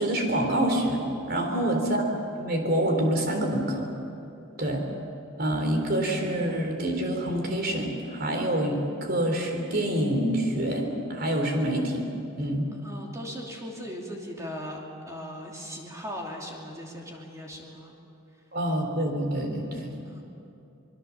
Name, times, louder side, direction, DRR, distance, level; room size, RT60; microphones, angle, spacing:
voice 1, 0.0-2.0 2.4-3.9 4.6-4.8 5.4-12.1 12.4-12.7 18.5-19.9, right 1 dB, 50° right, 3 dB, 3.7 m, -26 dB
voice 2, 1.5-1.8 12.8-17.9 20.1-20.2, equal, 15° right, -1 dB, 2.9 m, -39 dB
25.5 x 21.5 x 7.2 m, 2.7 s
head